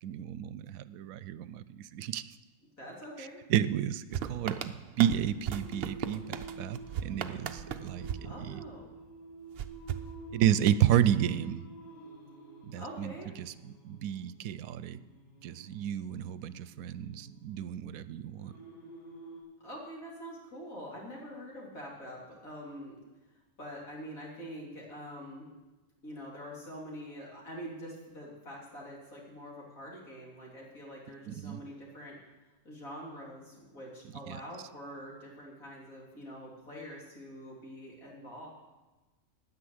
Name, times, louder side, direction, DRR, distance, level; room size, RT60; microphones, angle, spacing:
voice 1, 0.0-2.3 3.2-8.6 10.3-11.7 12.6-13.5 13.8-15.0 15.4-18.5 31.3-31.6 34.3-34.4, right 11 dB, 85° right, 16 dB, 1.0 m, -31 dB
voice 2, 2.8-3.4 8.2-8.9 12.8-13.3 19.6-23.0 23.6-25.5 26.0-32.2 32.7-38.5, equal, 80° left, -3 dB, 3.6 m, -45 dB
sound 1, 4.1-9.0 9.6-10.8, right 9 dB, 55° right, 0.7 m, -39 dB
Singing, 5.4-19.4, right 2 dB, 30° left, 5.7 m, -50 dB
9.8 x 9.7 x 7.8 m, 1.1 s
omnidirectional pair, 1.4 m